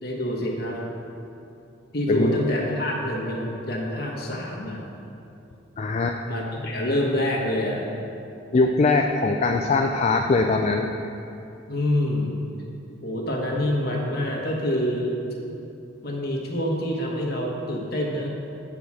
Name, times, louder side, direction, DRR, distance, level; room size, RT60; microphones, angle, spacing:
voice 1, 0.0-0.9 1.9-4.8 6.3-7.9 11.7-12.3 13.0-15.1 16.0-18.3, left 1 dB, 50° left, -1 dB, 1.3 m, -26 dB
voice 2, 5.8-6.2 8.5-10.9, left 3 dB, 35° left, 3 dB, 0.3 m, -21 dB
8.5 x 5.0 x 6.1 m, 2.7 s
head